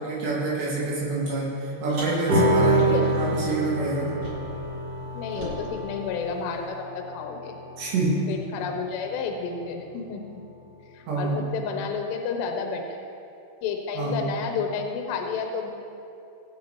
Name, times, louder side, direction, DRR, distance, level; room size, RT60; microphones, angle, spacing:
voice 1, 0.0-4.2 7.8-8.3 11.1-11.4 13.9-14.3, right 2 dB, 80° right, -7 dB, 4.1 m, -27 dB
Car, 1.9-4.7 4.9-6.8, equal, 35° right, 3.3 m, -42 dB
sound 1, 2.3-9.0, right 1 dB, 55° right, 2.9 m, -27 dB
voice 2, 5.1-7.6 8.3-10.4 10.9-13.0 13.6-15.7, left 5 dB, 85° left, 3 dB, 3.0 m, -31 dB
23.0 x 8.5 x 3.0 m, 2.7 s
omnidirectional pair, 4.9 m